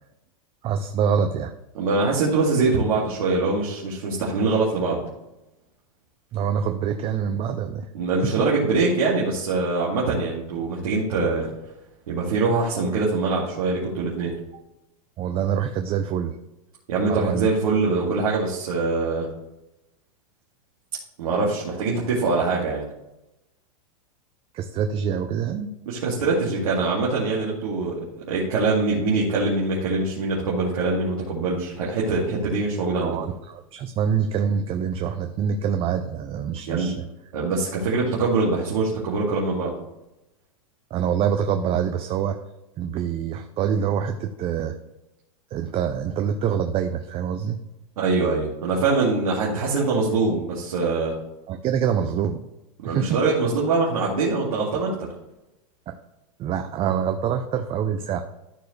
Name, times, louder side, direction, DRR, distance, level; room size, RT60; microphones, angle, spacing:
voice 1, 0.6-1.5 6.3-7.9 8.2-8.3 15.2-16.4 17.1-17.5 24.5-25.7 32.9-36.9 40.9-42.4 42.8-44.8 45.5-47.6 51.5-52.4 52.8-53.2 55.9-56.0 56.4-58.2, right 7 dB, 30° right, 7 dB, 0.6 m, -25 dB
voice 2, 1.7-5.0 7.9-11.5 12.1-14.3 16.9-19.3 21.2-22.8 25.9-33.2 36.7-36.9 37.3-39.7 48.0-51.1 52.8-54.9, right 3 dB, 80° right, -5 dB, 2.3 m, -23 dB
13.5 x 4.7 x 3.2 m, 0.94 s
hypercardioid pair, 120°, 18 cm